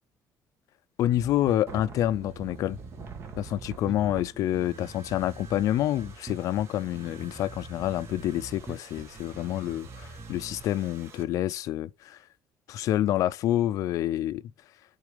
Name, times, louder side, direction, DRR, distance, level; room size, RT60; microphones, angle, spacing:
voice 1, 1.0-2.8 3.4-12.2 12.7-14.4, left 12 dB, 60° left, 0.4 m, -28 dB
Bass guitar, 1.0-10.6, right 3 dB, 15° right, 1.1 m, -45 dB
sound 1, 1.7-11.2, right 4 dB, 40° right, 1.3 m, -48 dB
8.1 x 3.9 x 5.1 m
cardioid pair, 175°, 7 cm